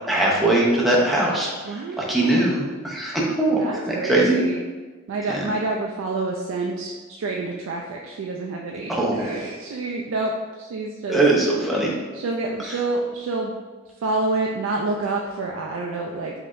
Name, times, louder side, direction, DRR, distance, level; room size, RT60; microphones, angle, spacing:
voice 1, 0.1-4.4 5.3-5.4 8.9-9.4 11.1-11.9 12.6-12.8, right 2 dB, ahead, -5 dB, 0.6 m, -21 dB
voice 2, 1.7-2.6 3.6-4.6 5.1-11.2 12.1-13.5 14.0-16.3, right 2 dB, 70° right, 0 dB, 0.3 m, -28 dB
4.1 x 2.9 x 2.5 m, 1.3 s
head